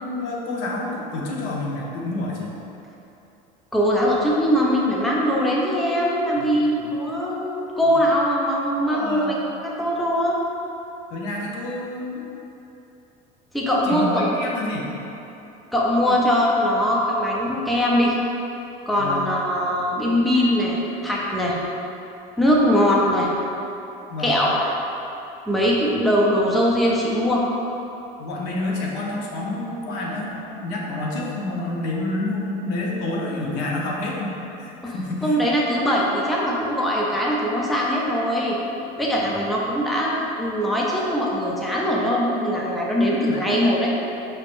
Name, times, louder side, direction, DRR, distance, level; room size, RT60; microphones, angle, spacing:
voice 1, 0.0-2.6 6.4-6.9 7.9-8.0 8.8-9.3 11.1-12.3 13.9-14.9 16.1-16.2 16.7-16.8 19.0-19.3 20.3-20.6 24.1-24.4 28.2-35.4 39.2-39.5 43.3-43.4, left 2 dB, 65° left, -3 dB, 0.8 m, -29 dB
voice 2, 3.7-9.4 9.6-10.4 13.5-14.2 15.7-18.2 18.9-20.8 21.0-21.5 22.4-23.3 24.2-24.7 25.5-27.4 34.8-34.9 35.2-38.6 39.0-43.9, equal, ahead, -4 dB, 0.3 m, -21 dB
5.3 x 3.3 x 2.5 m, 2.9 s
cardioid pair, 165°, 19 cm